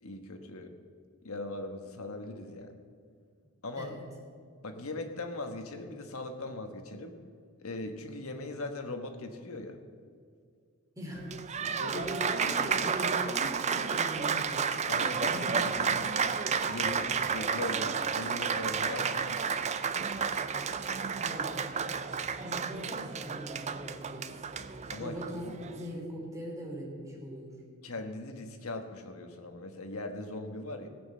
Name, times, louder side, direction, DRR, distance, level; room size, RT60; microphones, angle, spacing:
voice 1, 0.0-0.7 1.2-2.8 3.6-4.0 4.6-7.2 7.6-9.8 11.8-12.1 14.9-16.0 16.7-19.7 24.9-25.1 25.4-25.6 27.8-30.9, left 2 dB, 70° left, 5 dB, 1.3 m, -40 dB
voice 2, 3.7-4.1 10.9-14.7 15.3-16.1 21.2-21.6 22.4-24.3 25.0-27.6, equal, 15° right, -3 dB, 3.4 m, -41 dB
Applause, 11.1-25.9, right 6 dB, 30° right, 0.5 m, -31 dB
17.0 x 6.4 x 7.6 m, 2.2 s
head